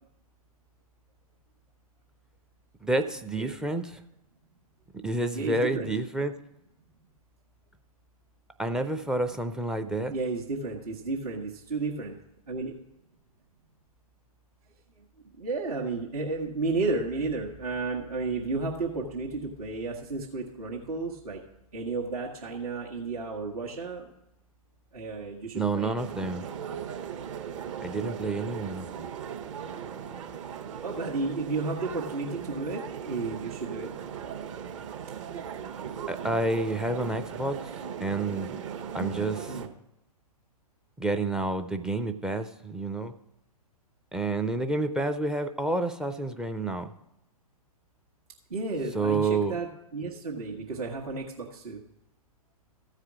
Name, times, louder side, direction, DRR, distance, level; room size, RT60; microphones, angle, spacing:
voice 1, 2.8-4.0 5.0-6.3 8.6-10.1 25.5-26.4 27.8-29.1 36.1-37.7 38.0-38.6 38.9-39.5 41.0-43.1 44.1-46.9 48.9-49.6, right 2 dB, 5° right, 11 dB, 0.4 m, -29 dB
voice 2, 5.3-5.9 10.1-12.2 12.5-12.8 15.0-15.1 15.4-21.4 21.7-24.1 24.9-25.9 30.8-33.9 39.4-39.7 48.5-51.8, right 3 dB, 75° right, -3 dB, 1.5 m, -32 dB
sound 1, 26.0-39.7, right 8 dB, 55° right, 1.1 m, -38 dB
14.5 x 4.9 x 6.0 m, 0.88 s
figure-of-eight pair, 120°, 19 cm